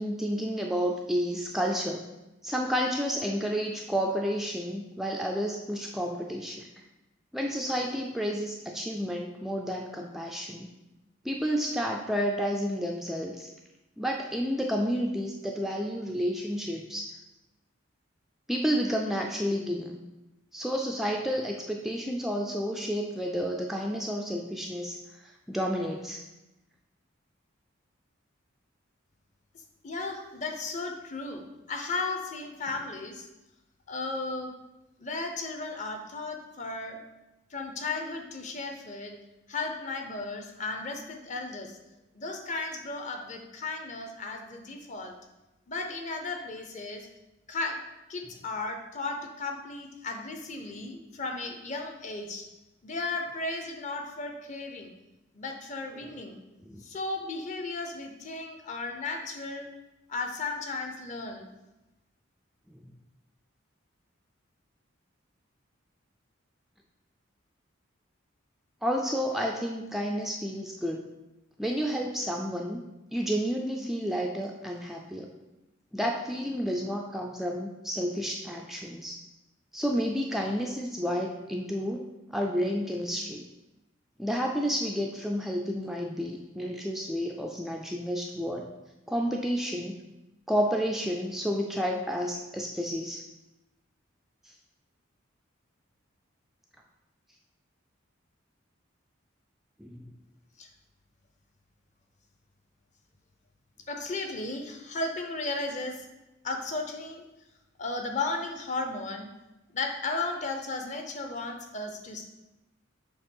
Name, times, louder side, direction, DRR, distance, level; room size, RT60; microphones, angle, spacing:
voice 1, 0.0-2.0 2.4-6.6 7.3-10.7 11.2-13.5 14.0-17.2 18.5-20.0 20.5-25.0 25.2-26.2 56.7-56.8 68.8-71.1 71.6-72.8 73.1-75.3 75.9-79.2 79.7-82.0 82.3-83.4 84.2-88.7 89.1-90.0 90.5-93.2 99.8-100.1, equal, ahead, 0 dB, 0.3 m, -30 dB
voice 2, 29.8-33.3 33.9-34.5 35.0-37.0 37.5-39.2 39.5-41.8 42.1-45.1 45.7-47.1 47.5-47.8 48.1-52.5 52.8-54.9 55.3-56.4 56.8-59.7 60.1-61.5 100.6-100.7 103.9-106.1 106.4-107.2 107.8-109.3 109.7-112.3, left 3 dB, 35° left, 4 dB, 0.7 m, -35 dB
7.1 x 2.9 x 5.4 m, 0.99 s
head